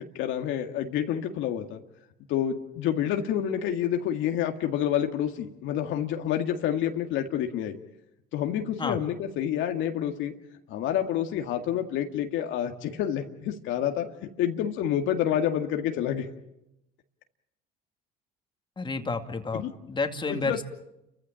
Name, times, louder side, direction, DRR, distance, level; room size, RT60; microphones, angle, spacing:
voice 1, 0.0-1.8 2.3-7.8 8.3-10.3 10.7-16.3 19.5-19.7 20.3-20.6, left 10 dB, 70° left, 5 dB, 2.0 m, -28 dB
voice 2, 18.8-20.6, left 3 dB, 25° left, 6 dB, 2.3 m, -30 dB
29.0 x 15.0 x 8.9 m, 0.87 s
supercardioid pair, 80°, 20 cm